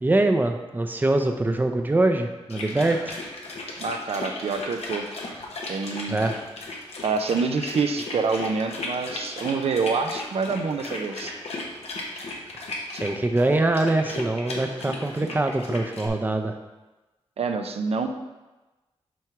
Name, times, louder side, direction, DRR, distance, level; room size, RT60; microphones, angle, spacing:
voice 1, 0.0-3.2 6.1-6.4 13.0-16.6, right 2 dB, 15° right, 5 dB, 0.6 m, -23 dB
sound 1, 2.5-16.1, left 2 dB, 80° left, 1.2 m, -36 dB
voice 2, 3.8-5.1 5.7-6.2 7.0-11.3 12.9-13.0 17.4-18.1, right 4 dB, 75° right, 5 dB, 0.6 m, -26 dB
6.1 x 3.5 x 5.9 m, 1.1 s
wide cardioid pair, 85°, 11 cm